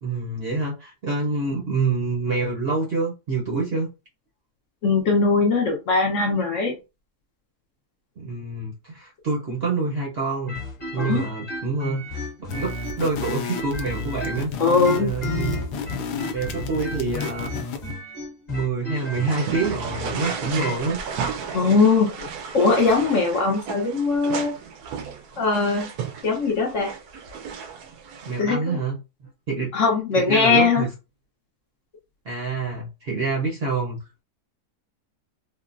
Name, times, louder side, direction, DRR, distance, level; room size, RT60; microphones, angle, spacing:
voice 1, 0.0-3.9 8.2-10.6 10.9-12.1 12.4-14.5 15.0-15.6 16.3-17.9 18.5-21.0 28.2-29.0 29.5-29.7 30.2-30.9 32.2-34.0, right 3 dB, 50° right, 0.7 m, -27 dB
voice 2, 4.8-6.8 11.0-11.3 14.6-15.1 20.6-20.7 21.5-22.3 22.5-24.5 25.4-25.9 26.2-26.9 28.4-28.8 29.7-30.8, left 4 dB, 60° left, 0.9 m, -20 dB
sound 1, 10.5-14.5 14.8-20.8, left 3 dB, 30° left, 1.1 m, -34 dB
sound 2, 12.5-17.9, left 3 dB, 85° left, 1.2 m, -32 dB
sound 3, 19.0-28.4, right 6 dB, 75° right, 1.0 m, -34 dB
3.6 x 2.1 x 2.5 m
omnidirectional pair, 1.7 m